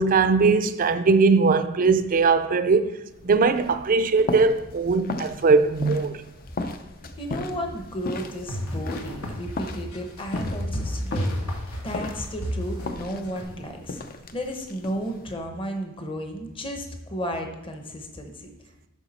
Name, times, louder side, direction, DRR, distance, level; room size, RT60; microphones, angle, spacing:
voice 1, 0.0-2.9 3.2-6.2, right 4 dB, 40° right, 0.4 m, -20 dB
sound 1, 3.1-15.3, left 2 dB, 45° left, 0.5 m, -37 dB
voice 2, 7.2-14.0 14.3-18.5, equal, 25° left, 0.9 m, -33 dB
sound 2, 8.1-13.4, equal, 90° left, 1.4 m, -31 dB
8.2 x 5.8 x 4.2 m
head